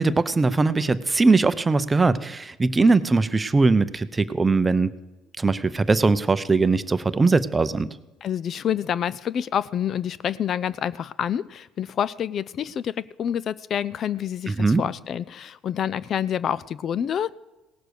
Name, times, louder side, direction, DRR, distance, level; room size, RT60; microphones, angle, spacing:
voice 1, 0.0-4.9 5.4-7.9 14.5-14.8, right 3 dB, 20° right, 14 dB, 0.6 m, -20 dB
voice 2, 8.2-17.3, left 9 dB, 45° left, 21 dB, 0.3 m, -27 dB
17.5 x 6.8 x 6.4 m, 1.1 s
cardioid pair, 110°, 0 cm